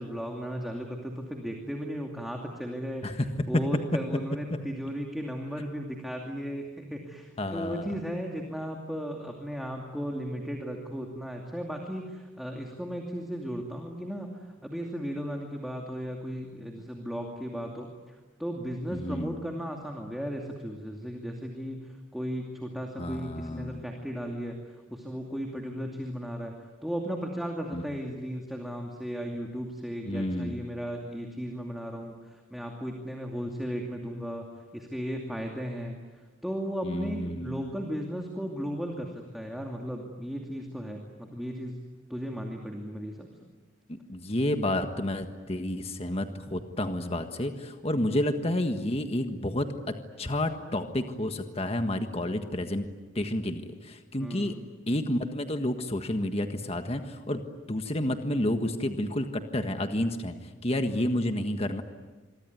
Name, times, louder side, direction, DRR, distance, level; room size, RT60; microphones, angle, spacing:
voice 1, 0.0-3.2 3.5-26.5 26.8-34.5 34.7-36.0 36.4-41.8 42.1-43.3 47.9-48.1 54.2-54.7 60.9-61.1, equal, ahead, 1 dB, 2.5 m, -36 dB
voice 2, 7.4-7.9 18.9-19.3 23.0-23.8 27.7-27.8 30.0-30.6 36.8-37.7 43.9-52.8 53.1-54.5 54.9-57.4 57.7-60.3 60.6-61.8, left 1 dB, 30° left, 7 dB, 1.6 m, -30 dB
26.5 x 23.5 x 9.6 m, 1.3 s
head